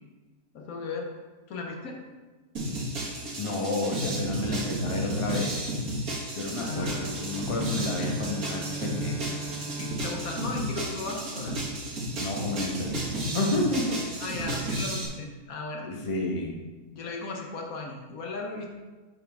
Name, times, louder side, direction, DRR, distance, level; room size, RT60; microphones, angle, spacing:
voice 1, 0.5-1.1 1.5-2.0 6.5-7.1 9.8-11.6 14.2-15.9 16.9-18.7, left 3 dB, 80° left, 1 dB, 1.4 m, -36 dB
sound 1, 2.6-15.1, right 1 dB, 85° right, 2.2 m, -33 dB
voice 2, 3.4-5.6 6.4-9.4 12.2-14.0 15.8-16.6, left 2 dB, 25° left, -1 dB, 1.0 m, -31 dB
Bowed string instrument, 6.5-11.7, right 3 dB, 55° right, 0.6 m, -41 dB
8.3 x 5.8 x 3.5 m, 1.3 s
omnidirectional pair, 1.5 m